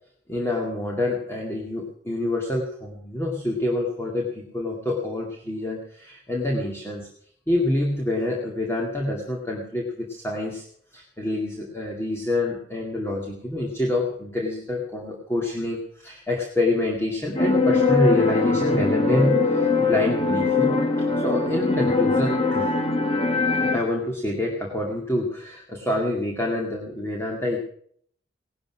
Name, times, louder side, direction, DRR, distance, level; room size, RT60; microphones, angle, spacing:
voice 1, 0.3-7.1 7.5-10.6 10.9-20.8 21.2-22.7 23.6-27.6, left 1 dB, 15° left, -1 dB, 2.3 m, -26 dB
sound 1, 17.4-23.8, left 3 dB, 30° left, 2.2 m, -22 dB
18.0 x 12.0 x 6.1 m, 0.63 s
head